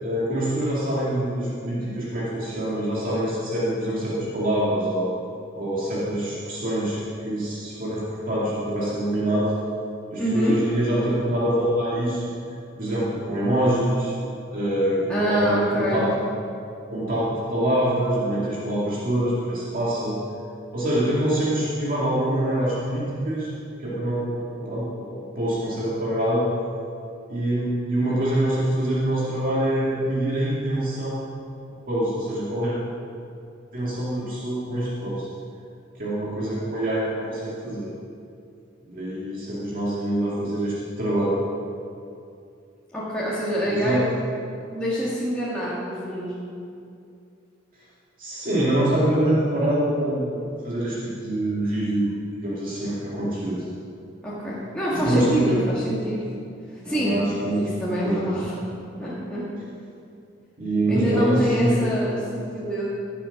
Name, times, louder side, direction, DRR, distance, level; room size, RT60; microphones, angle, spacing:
voice 1, 0.0-5.1 5.6-7.0 7.2-9.5 10.1-12.3 12.8-14.1 14.5-16.1 16.9-20.2 20.7-23.5 23.8-26.4 27.3-31.2 31.9-32.7 33.7-35.3 36.0-37.9 38.9-41.4 43.7-44.0 48.2-52.1 52.4-53.7 54.9-55.6 56.8-57.6 58.0-58.2 60.6-61.9, right 1 dB, 50° right, -7 dB, 2.2 m, -25 dB
voice 2, 10.2-10.6 15.1-16.1 42.9-44.1 44.7-46.3 54.2-56.2 56.7-57.2 57.6-58.6 59.0-59.4 60.9-62.9, equal, 5° left, -9 dB, 2.0 m, -26 dB
16.0 x 7.6 x 5.9 m, 2.6 s
head